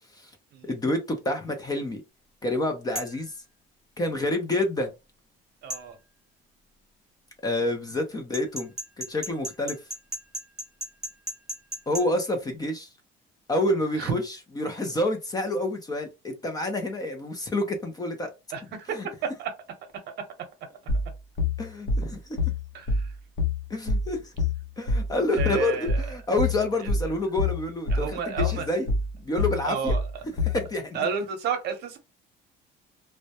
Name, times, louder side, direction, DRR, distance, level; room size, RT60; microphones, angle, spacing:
voice 1, 0.6-2.0 2.4-3.3 4.0-4.9 7.4-9.8 11.9-12.9 13.5-18.3 18.8-19.1 21.6-22.4 23.7-24.3 24.8-28.9 29.2-29.9 30.2-31.0, left 1 dB, 20° left, 0.5 m, -28 dB
sound 1, 3.0-3.2 5.7-5.9 8.3-12.1, right 1 dB, 5° right, 0.8 m, -34 dB
voice 2, 5.6-6.0 14.0-14.1 18.5-18.6 19.4-19.5 22.7-22.9 25.4-26.0 27.9-28.6 29.7-30.0 30.9-32.0, right 6 dB, 60° right, 0.8 m, -30 dB
sound 2, 20.9-30.7, left 3 dB, 70° left, 0.7 m, -26 dB
2.1 x 2.1 x 2.7 m
cardioid pair, 135°, 20 cm